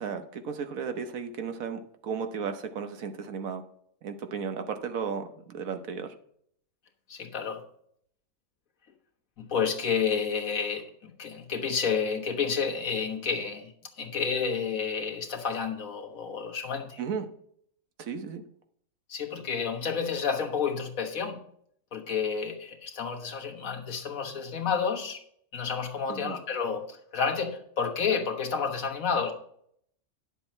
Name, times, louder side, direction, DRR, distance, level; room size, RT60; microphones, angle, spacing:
voice 1, 0.0-3.6 4.0-6.1 17.0-17.3 18.0-18.4 26.1-26.4, right 6 dB, 75° right, 7 dB, 1.3 m, -34 dB
voice 2, 7.1-7.6 9.4-10.9 11.2-13.7 14.0-17.0 19.1-21.4 21.9-25.2 25.5-29.3, left 6 dB, 70° left, 2 dB, 1.7 m, -30 dB
10.5 x 7.1 x 4.3 m, 0.66 s
omnidirectional pair, 1.5 m